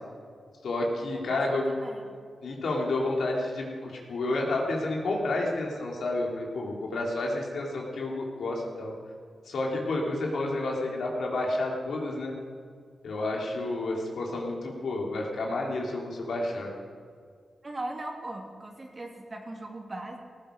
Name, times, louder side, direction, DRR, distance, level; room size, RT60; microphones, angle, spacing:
voice 1, 0.6-1.7 2.4-8.9 9.5-12.3 13.0-16.7, left 2 dB, 80° left, -1 dB, 3.2 m, -30 dB
voice 2, 1.3-2.2 17.6-20.2, right 2 dB, 30° right, 1 dB, 2.6 m, -39 dB
18.0 x 15.5 x 5.3 m, 2.1 s
wide cardioid pair, 100°, 0 cm